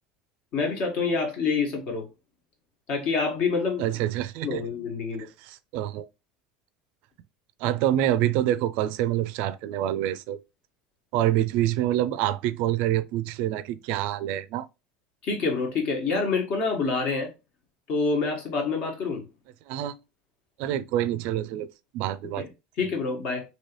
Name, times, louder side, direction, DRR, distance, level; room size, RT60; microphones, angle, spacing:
voice 1, 0.5-2.0 2.9-3.8 4.4-5.2 15.2-17.3 17.9-19.2 22.4-22.5 22.8-23.4, left 4 dB, 55° left, 1.4 m, -27 dB
voice 2, 3.8-4.6 5.4-6.1 7.6-10.4 11.1-14.7 19.7-19.9 20.6-21.7 21.9-22.4, right 12 dB, 65° right, 0.3 m, -26 dB
3.1 x 2.7 x 2.9 m
supercardioid pair, 110°, 3 cm